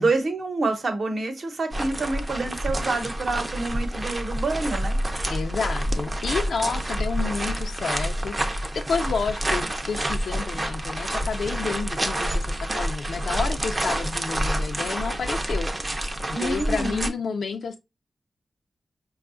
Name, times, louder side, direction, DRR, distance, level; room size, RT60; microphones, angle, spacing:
voice 1, 0.0-5.0 16.3-17.1, right 3 dB, 55° right, 0.8 m, -27 dB
sound 1, 1.7-17.1, right 1 dB, 25° right, 0.5 m, -28 dB
voice 2, 5.3-15.7 16.3-17.8, left 5 dB, 90° left, 0.4 m, -30 dB
5.3 x 2.3 x 2.4 m
wide cardioid pair, 150°, 0 cm